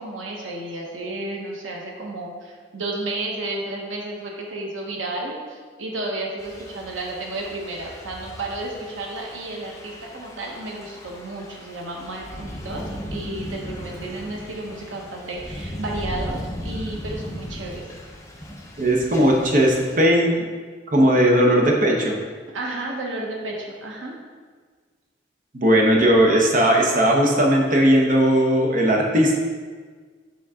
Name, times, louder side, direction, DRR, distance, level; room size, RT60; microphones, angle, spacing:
voice 1, 0.0-12.8 13.1-17.8 22.5-24.2, right 2 dB, 90° right, -1 dB, 0.9 m, -32 dB
Thunder / Rain, 6.4-20.0, equal, 15° left, 0.6 m, -37 dB
voice 2, 18.8-20.4 20.9-22.2 25.5-29.4, equal, 45° right, 0 dB, 0.8 m, -17 dB
7.3 x 3.8 x 3.6 m, 1.5 s
head